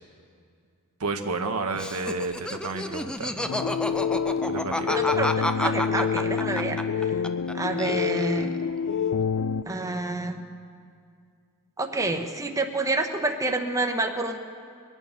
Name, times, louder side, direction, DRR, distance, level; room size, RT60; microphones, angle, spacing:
voice 1, 1.0-3.5 4.4-5.1, right 3 dB, 85° right, 6 dB, 1.0 m, -31 dB
Laughter, 1.7-7.5 7.8-8.6, left 1 dB, 5° left, 0.4 m, -30 dB
sound 1, 3.5-9.6, left 6 dB, 80° left, 0.4 m, -27 dB
voice 2, 4.9-7.2 7.5-8.6 9.7-10.4 11.8-14.4, right 2 dB, 15° right, 4 dB, 0.8 m, -28 dB
23.0 x 9.2 x 5.7 m, 2.3 s
head